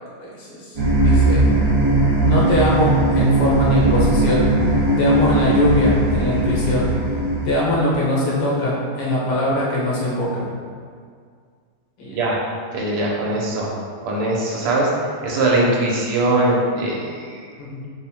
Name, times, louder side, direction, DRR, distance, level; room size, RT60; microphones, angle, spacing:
voice 1, 0.2-0.8 1.0-1.4 2.2-4.5 5.0-6.9 7.4-10.5 12.0-12.2 17.6-17.9, left 1 dB, 80° left, -6 dB, 2.0 m, -22 dB
sound 1, 0.8-7.5, right 1 dB, 45° right, 1.3 m, -18 dB
voice 2, 12.7-13.7 14.0-14.9 15.2-17.4, right 2 dB, 90° right, -3 dB, 1.7 m, -21 dB
5.1 x 2.1 x 4.3 m, 2.1 s
omnidirectional pair, 2.4 m